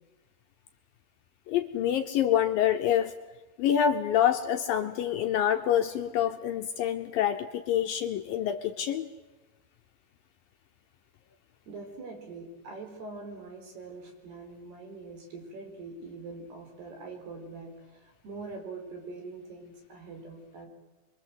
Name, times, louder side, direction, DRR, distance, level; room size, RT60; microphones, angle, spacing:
voice 1, 1.5-3.1 3.6-9.0, left 10 dB, 75° left, 6 dB, 2.1 m, -26 dB
voice 2, 11.7-20.7, right 3 dB, 65° right, 3 dB, 6.4 m, -43 dB
25.5 x 23.5 x 7.9 m, 1.2 s
omnidirectional pair, 5.0 m